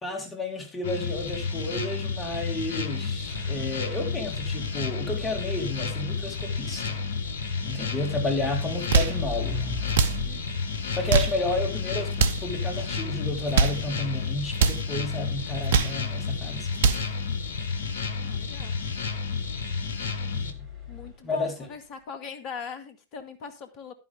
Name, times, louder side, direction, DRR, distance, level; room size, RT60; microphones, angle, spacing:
voice 1, 0.0-7.0 7.6-9.8 10.9-16.7 20.3-20.7 21.2-21.5, left 2 dB, 20° left, 4.0 m, -31 dB
sound 1, 0.8-20.5, left 4 dB, 65° left, 1.2 m, -31 dB
sound 2, 3.2-21.5, left 6 dB, 20° right, 8.0 m, -40 dB
sound 3, 8.7-9.2 9.9-10.2 10.9-11.4 12.1-12.5 13.3-13.8 14.5-14.8 15.5-16.0 16.6-17.1, right 5 dB, 60° right, 0.9 m, -23 dB
voice 2, 18.2-18.8 20.9-23.9, left 6 dB, 40° left, 2.1 m, -41 dB
11.5 x 9.5 x 3.6 m
figure-of-eight pair, 90°, 0 cm